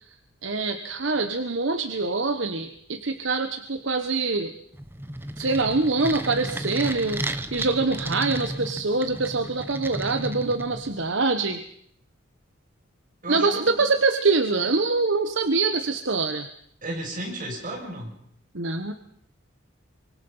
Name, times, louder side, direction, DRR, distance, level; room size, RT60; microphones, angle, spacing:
voice 1, 0.4-4.5 5.4-11.6 13.3-16.5 18.5-18.9, right 3 dB, 65° right, 8 dB, 1.3 m, -24 dB
sound 1, 4.7-11.1, right 1 dB, 10° right, 1.0 m, -33 dB
voice 2, 13.2-13.8 16.8-18.2, right 1 dB, 40° right, 0 dB, 6.8 m, -34 dB
25.0 x 24.5 x 5.6 m, 0.68 s
head